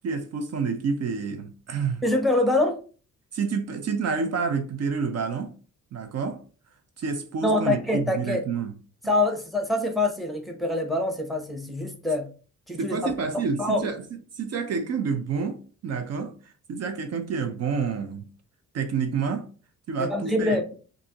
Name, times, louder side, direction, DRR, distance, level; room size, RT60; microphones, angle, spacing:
voice 1, 0.0-2.0 3.3-5.5 5.9-6.4 7.0-8.7 12.8-14.0 14.4-16.3 16.7-18.3 18.7-19.5 19.9-20.6, right 5 dB, 55° right, 0.6 m, -28 dB
voice 2, 2.0-2.8 7.4-8.4 9.0-12.3 12.7-13.1 13.6-13.9 20.0-20.6, left 2 dB, ahead, 0.9 m, -25 dB
6.0 x 2.6 x 2.9 m
cardioid pair, 115°, 30 cm